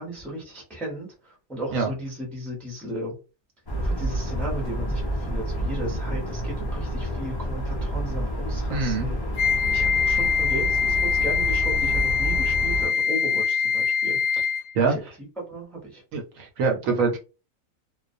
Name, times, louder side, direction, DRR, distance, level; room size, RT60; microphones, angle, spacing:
voice 1, 0.0-3.1 3.8-9.2 9.7-14.4 14.8-15.0 15.4-16.0, equal, ahead, -2 dB, 0.6 m, -35 dB
sound 1, 3.7-12.9, right 1 dB, 40° left, 0.3 m, -29 dB
voice 2, 8.7-9.1 14.7-15.0 16.1-17.2, right 4 dB, 70° right, 2 dB, 1.0 m, -24 dB
Wind instrument woodwind instrument, 9.4-14.7, left 6 dB, 65° left, 0.8 m, -23 dB
2.4 x 2.1 x 2.5 m, 0.31 s
omnidirectional pair, 1.5 m